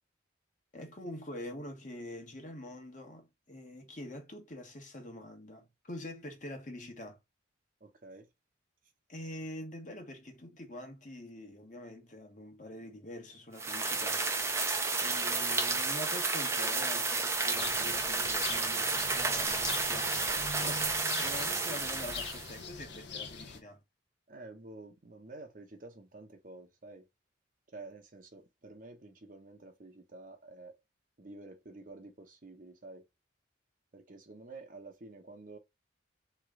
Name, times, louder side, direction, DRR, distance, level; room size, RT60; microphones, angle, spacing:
voice 1, 0.7-7.2 9.1-14.2 15.0-23.8, left 1 dB, 40° left, 1.2 m, -45 dB
voice 2, 7.8-8.3 24.3-27.1 27.7-30.8 31.2-33.0 33.9-35.6, right 2 dB, 40° right, 0.8 m, -50 dB
sound 1, 13.6-22.6, right 3 dB, 15° right, 0.5 m, -31 dB
sound 2, 17.6-23.6, left 5 dB, 55° left, 0.8 m, -43 dB
3.7 x 3.2 x 3.6 m
head